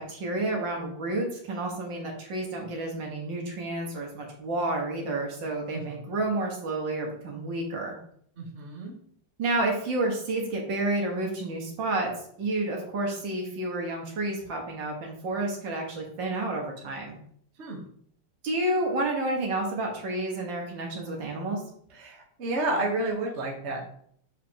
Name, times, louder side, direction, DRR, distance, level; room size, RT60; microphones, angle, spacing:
voice 1, 0.0-7.9 9.4-12.1 12.4-17.2 18.4-21.6, right 2 dB, 60° right, 0 dB, 2.0 m, -30 dB
voice 2, 8.4-9.0 17.6-17.8 21.9-23.8, right 2 dB, 40° right, -1 dB, 1.1 m, -31 dB
7.4 x 4.9 x 2.9 m, 0.63 s
omnidirectional pair, 2.4 m